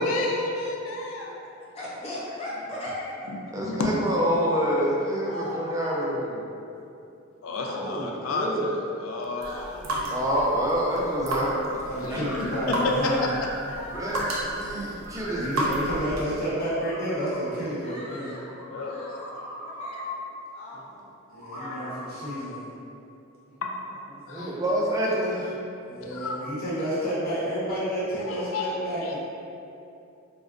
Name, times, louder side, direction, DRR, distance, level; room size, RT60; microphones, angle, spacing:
voice 1, 0.0-1.4 3.3-3.9 7.4-9.9 11.9-12.3 12.7-13.5 18.6-19.0 21.6-21.7 23.6-23.7 24.3-24.6 26.0-26.5 28.3-28.7 29.0-29.2, left 3 dB, 70° left, 0 dB, 0.4 m, -31 dB
voice 2, 1.8-3.3 5.2-6.2 7.5-8.0 9.3-9.8 13.7-14.3 17.8-21.1 21.4-22.0, left 1 dB, 30° left, -7 dB, 0.6 m, -39 dB
voice 3, 3.5-6.4 7.7-8.7 10.1-11.8 12.1-12.2 13.9-14.2 14.5-15.8 24.3-25.5, equal, 15° right, -4 dB, 0.4 m, -27 dB
sound 1, 9.4-16.4, right 1 dB, 75° right, 0.5 m, -33 dB
sound 2, 11.1-11.9 12.1-14.8 15.0-15.9 16.4-17.4 18.3-20.2 21.3-22.4, equal, 5° left, 1.0 m, -38 dB
voice 4, 11.7-13.3 15.3-18.4 21.3-22.6 24.3-24.6 25.8-29.2, equal, 50° left, -10 dB, 1.0 m, -30 dB
3.7 x 2.1 x 2.4 m, 2.7 s
head